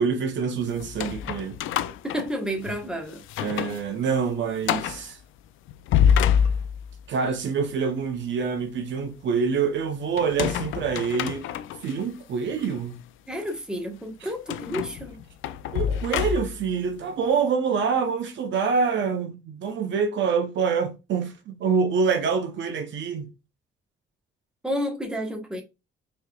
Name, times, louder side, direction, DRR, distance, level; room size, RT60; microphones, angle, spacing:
voice 1, 0.0-1.6 3.4-5.2 7.1-11.4 11.8-13.0 14.2-14.3 15.7-23.3, right 5 dB, 70° right, 0.9 m, -26 dB
sound 1, 0.8-2.8 3.2-3.8 4.1-4.2 4.6-5.0 5.7-7.0 10.2-11.9 12.6-12.7 14.5-16.7, left 8 dB, 80° left, 0.4 m, -26 dB
voice 2, 2.0-3.2 13.3-15.2 24.6-25.6, equal, 5° right, 1.2 m, -30 dB
4.6 x 3.2 x 2.3 m
cardioid pair, 90°, 20 cm